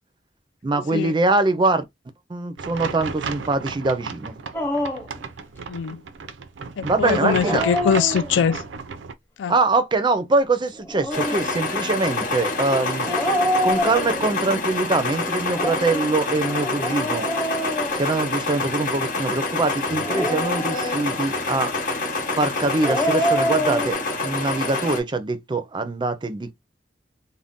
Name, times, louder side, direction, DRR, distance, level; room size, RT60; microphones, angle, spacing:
voice 1, 0.6-1.8 2.3-4.4 6.8-7.7 9.5-13.1 13.6-17.3 17.9-21.7 22.3-24.0 24.2-26.5, right 3 dB, 25° right, 0.4 m, -23 dB
sound 1, 2.6-9.1, right 5 dB, 80° right, 0.5 m, -33 dB
Dog, 4.5-5.2 7.3-8.6 10.7-11.5 13.0-14.5 15.4-18.6 19.9-21.3 22.6-23.9, equal, 10° left, 0.7 m, -27 dB
voice 2, 5.7-6.0 6.8-8.6 9.4-9.5, left 7 dB, 75° left, 0.3 m, -22 dB
sound 2, 11.1-25.0, left 3 dB, 50° left, 0.9 m, -27 dB
2.5 x 2.1 x 3.5 m
head